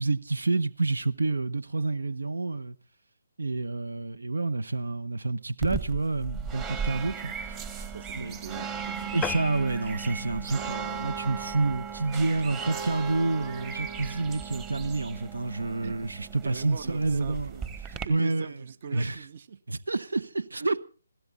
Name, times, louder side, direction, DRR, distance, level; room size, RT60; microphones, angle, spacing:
voice 1, 0.0-2.7 3.4-7.9 8.1-8.3 9.1-17.5 18.1-18.5 18.9-19.1 19.7-20.8, right 3 dB, 75° right, 1.0 m, -28 dB
sound 1, 5.6-18.1, right 6 dB, 20° right, 1.5 m, -37 dB
voice 2, 7.8-9.2 15.8-17.6 17.9-19.6, right 6 dB, 45° right, 1.0 m, -42 dB
sound 2, 9.2-12.0 12.4-12.6 13.1-13.2 13.5-13.6 13.8-13.9, left 7 dB, 10° left, 0.7 m, -38 dB
21.5 x 16.5 x 3.9 m
figure-of-eight pair, 145°, 0 cm